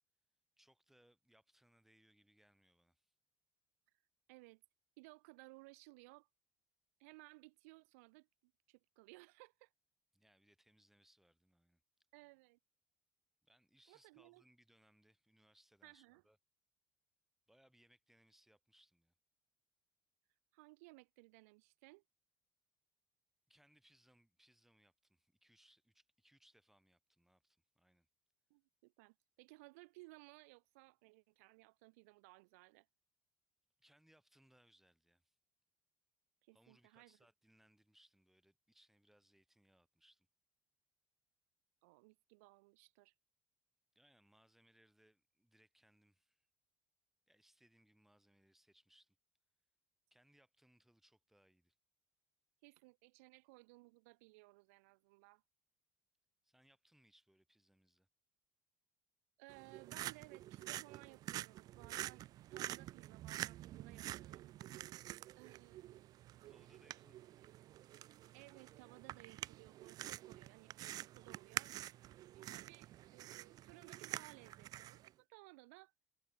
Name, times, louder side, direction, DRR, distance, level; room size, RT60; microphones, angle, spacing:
voice 1, 0.6-3.1 10.1-11.8 13.4-16.4 17.5-19.1 23.5-28.1 33.8-35.4 36.5-40.3 43.9-46.5 47.3-49.2 50.1-51.8 56.4-58.1 66.4-67.5, right 1 dB, 5° right, 4.2 m, -72 dB
voice 2, 4.3-4.6 5.0-6.3 7.0-9.7 12.1-12.6 13.9-14.4 15.8-16.2 20.5-22.0 28.5-32.9 36.4-37.2 41.8-43.1 52.6-55.4 59.4-64.5 65.4-66.1 68.3-71.7 72.3-75.9, right 26 dB, 70° right, 1.2 m, -61 dB
sound 1, 59.5-75.1, right 14 dB, 50° right, 0.5 m, -48 dB
hypercardioid pair, 60°, 8 cm